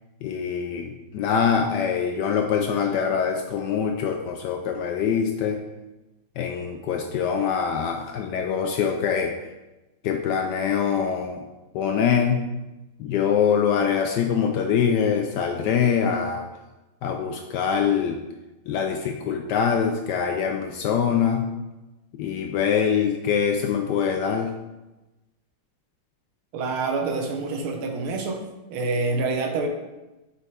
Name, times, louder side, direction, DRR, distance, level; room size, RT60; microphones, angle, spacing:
voice 1, 0.2-5.6 6.4-9.3 10.0-11.4 11.7-12.5 13.0-16.5 17.0-18.2 18.7-21.5 22.1-24.6, left 7 dB, 75° left, 4 dB, 1.0 m, -24 dB
voice 2, 26.5-28.4 28.7-29.7, right 3 dB, 90° right, 4 dB, 1.8 m, -26 dB
6.9 x 5.3 x 3.5 m, 1.0 s
omnidirectional pair, 2.2 m